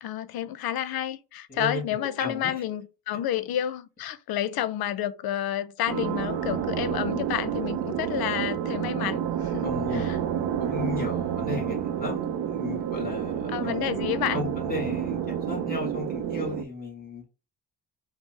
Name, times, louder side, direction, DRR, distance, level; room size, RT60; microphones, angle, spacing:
voice 1, 0.0-9.7 13.5-14.4, left 11 dB, 65° left, 0.5 m, -30 dB
voice 2, 1.5-2.6 9.6-13.8 14.3-17.2, left 2 dB, 20° left, 1.5 m, -35 dB
sound 1, 5.9-16.6, right 9 dB, 70° right, 0.5 m, -29 dB
5.2 x 2.0 x 3.0 m
cardioid pair, 155°, 41 cm